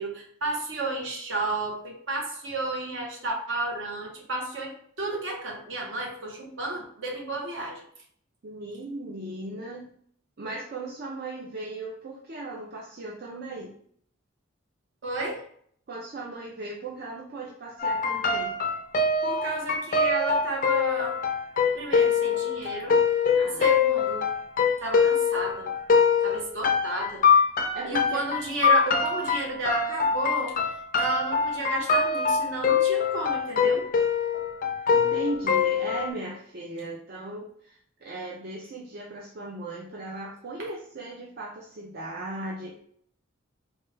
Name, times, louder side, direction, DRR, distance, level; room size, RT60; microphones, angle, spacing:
voice 1, 0.0-7.9 15.0-15.4 19.2-21.2 21.7-23.0 23.4-24.3 24.8-25.7 26.2-27.2 27.8-30.6 31.0-33.8 40.6-40.7, right 2 dB, 65° right, -1 dB, 1.0 m, -32 dB
voice 2, 8.4-9.9 10.4-13.7 15.9-18.6 23.4-23.7 27.7-28.2 34.9-42.7, right 2 dB, 50° right, -3 dB, 0.5 m, -37 dB
sound 1, 17.8-36.1, left 5 dB, 45° left, 0.4 m, -24 dB
4.3 x 2.2 x 3.3 m, 0.62 s
head